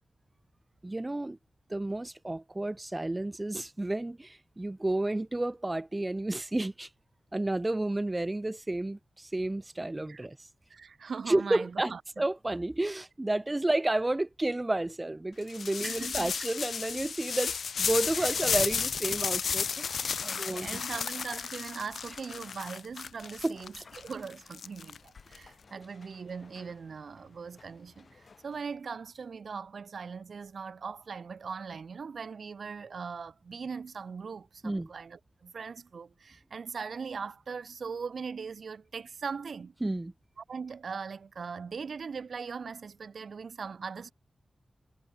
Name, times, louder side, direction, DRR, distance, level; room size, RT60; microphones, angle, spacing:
voice 1, 0.8-1.4 1.7-6.9 7.3-10.4 11.3-20.7 23.4-23.8 34.6-34.9 39.8-40.1, right 2 dB, 20° right, 0.4 m, -31 dB
voice 2, 10.7-12.2 15.8-16.3 18.1-18.4 20.2-39.7 40.4-44.1, right 5 dB, 70° right, 2.8 m, -40 dB
sound 1, 15.5-25.4, left 6 dB, 85° left, 0.8 m, -33 dB
sound 2, 21.2-28.8, left 4 dB, 50° left, 7.7 m, -59 dB
wide cardioid pair, 125°, 0 cm